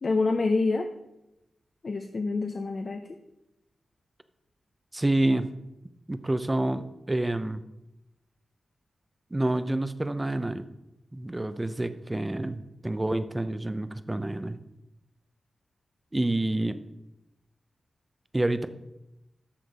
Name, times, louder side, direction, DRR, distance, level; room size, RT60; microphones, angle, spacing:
voice 1, 0.0-0.9 1.8-3.2, left 3 dB, 45° left, 6 dB, 0.6 m, -27 dB
voice 2, 4.9-5.5 6.1-7.6 9.3-10.6 11.1-14.6 16.1-16.8 18.3-18.7, right 1 dB, 15° right, 12 dB, 0.5 m, -28 dB
13.0 x 4.5 x 5.0 m, 0.91 s
wide cardioid pair, 130°, 0 cm